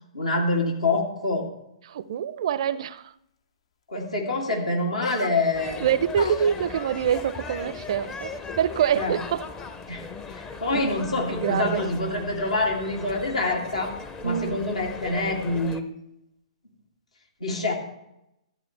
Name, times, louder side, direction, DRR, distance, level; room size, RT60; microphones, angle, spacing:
voice 1, 0.1-1.5 3.9-5.9 8.9-9.1 9.9-13.9 14.2-15.9 17.4-17.7, left 2 dB, 80° left, 2.4 m, -26 dB
voice 2, 1.9-3.1 5.8-9.5 10.7-10.8 11.4-11.8 14.2-14.6, right 9 dB, 55° right, 0.4 m, -25 dB
sound 1, 5.0-5.8 6.1-8.9 9.2-10.0, left 6 dB, 60° left, 0.7 m, -39 dB
sound 2, 5.5-15.8, left 4 dB, 20° left, 0.6 m, -38 dB
14.0 x 8.2 x 3.2 m
figure-of-eight pair, 120°, 3 cm